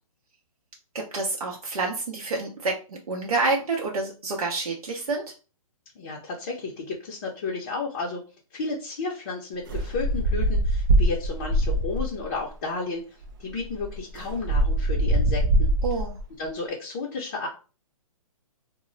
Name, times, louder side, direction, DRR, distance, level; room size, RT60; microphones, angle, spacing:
voice 1, 0.9-5.2 15.8-16.1, right 3 dB, 90° right, 0 dB, 0.7 m, -28 dB
voice 2, 6.0-8.2 8.5-13.0 13.4-15.7 16.4-17.5, left 3 dB, 30° left, -2 dB, 0.5 m, -32 dB
sound 1, 9.7-12.2 13.2-13.3 13.6-16.2, right 1 dB, 35° right, 0.4 m, -23 dB
2.0 x 2.0 x 3.7 m, 0.34 s
hypercardioid pair, 155°, 19 cm